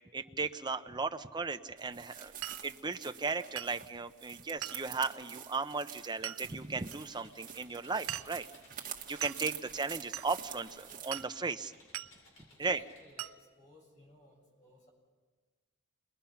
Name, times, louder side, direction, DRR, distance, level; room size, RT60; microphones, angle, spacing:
voice 1, 0.1-2.3 2.6-8.5 8.8-11.7 12.6-12.8, right 4 dB, 20° right, 8 dB, 0.7 m, -36 dB
sound 1, 1.8-11.3, right 9 dB, 40° right, 1.6 m, -48 dB
Glass, 2.4-2.7 3.6-3.8 4.6-4.9 6.2-6.4 6.9-7.0 8.1-8.4 9.2-9.5 10.1-10.3 11.1-11.3 11.9-12.1 13.2-13.4, right 12 dB, 75° right, 0.6 m, -40 dB
Computer keyboard, 6.3-13.1, left 2 dB, 70° left, 7.7 m, -61 dB
voice 2, 12.5-14.9, left 3 dB, 35° left, -1 dB, 7.3 m, -58 dB
29.0 x 22.0 x 5.8 m, 1.4 s
head